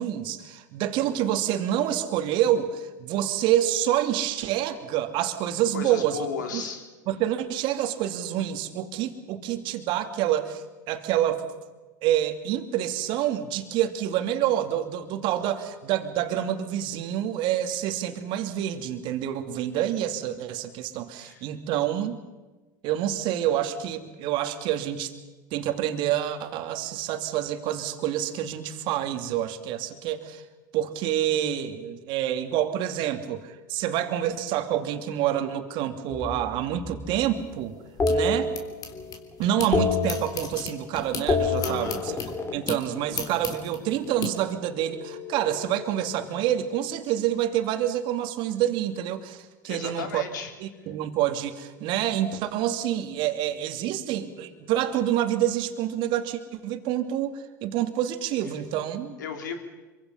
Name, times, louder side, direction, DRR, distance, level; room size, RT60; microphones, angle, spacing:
voice 1, 0.0-6.3 6.5-6.6 7.1-11.4 12.0-22.2 22.8-25.1 25.5-30.4 30.7-37.8 38.1-38.5 39.4-42.1 42.5-50.2 50.6-59.1, right 11 dB, 55° right, 7 dB, 2.4 m, -27 dB
voice 2, 5.7-6.8 21.2-21.4 41.6-42.1 49.6-50.5 59.2-59.6, left 6 dB, 80° left, 5 dB, 3.3 m, -35 dB
sound 1, 36.1-37.4 38.0-39.2 39.4-40.9 41.1-43.5 44.7-46.5, left 3 dB, 25° left, 3.1 m, -29 dB
sound 2, 37.4-39.7 40.0-44.3, left 5 dB, 40° left, 3.3 m, -37 dB
26.0 x 24.0 x 5.7 m, 1.2 s
hypercardioid pair, 85°, 10 cm